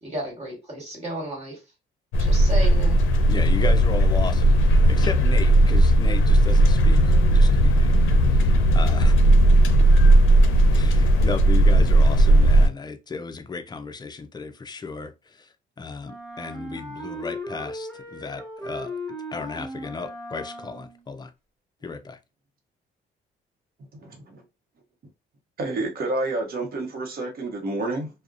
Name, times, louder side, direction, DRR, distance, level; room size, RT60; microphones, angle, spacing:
voice 1, 0.0-1.6 2.2-3.0, equal, 35° right, 1.5 m, -33 dB
sound 1, 2.1-12.7, right 1 dB, 85° left, 0.5 m, -16 dB
voice 2, 3.3-7.9 8.3-9.1 10.7-15.5 15.8-19.0 19.3-21.3 21.8-22.2, left 4 dB, 20° left, 0.4 m, -34 dB
Wind instrument woodwind instrument, 16.0-21.1, left 1 dB, 5° left, 0.9 m, -37 dB
voice 3, 25.6-28.1, right 2 dB, 50° right, 0.8 m, -28 dB
2.4 x 2.1 x 2.4 m
cardioid pair, 90°, 20 cm